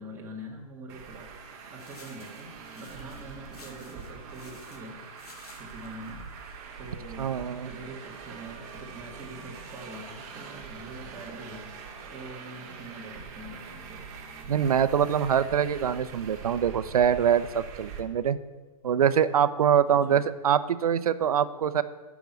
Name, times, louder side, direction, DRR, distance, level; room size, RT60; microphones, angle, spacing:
voice 1, 0.0-1.4 1.7-5.0 5.6-6.3 6.8-11.7 12.1-14.1 19.9-20.2, right 1 dB, 10° right, -2 dB, 1.7 m, -44 dB
Traffic noise roadway noise, 0.9-18.0, right 5 dB, 30° right, 1.2 m, -44 dB
sound 1, 1.8-7.0, left 4 dB, 85° left, 2.5 m, -54 dB
voice 2, 7.2-7.7 14.5-18.4 18.8-21.8, right 8 dB, 75° right, 14 dB, 0.7 m, -24 dB
9.0 x 6.1 x 8.2 m, 1.3 s
hypercardioid pair, 155°, 19 cm